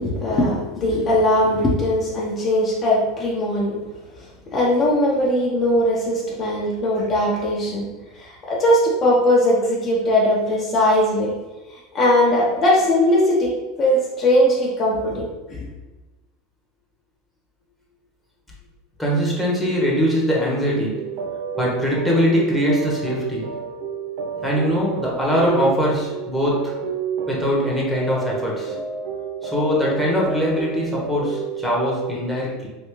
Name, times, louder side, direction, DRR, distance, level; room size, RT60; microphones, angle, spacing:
voice 1, 0.0-3.8 4.5-7.9 8.2-11.3 11.9-13.5 13.8-15.7, left 1 dB, 35° left, -4 dB, 0.7 m, -19 dB
voice 2, 19.0-21.1 21.6-23.5 24.4-26.8 27.3-28.8 29.4-32.7, equal, ahead, -4 dB, 1.0 m, -22 dB
sound 1, 20.9-32.1, right 6 dB, 65° right, 0.5 m, -30 dB
3.4 x 2.7 x 3.0 m, 1.1 s
supercardioid pair, 120°, 0 cm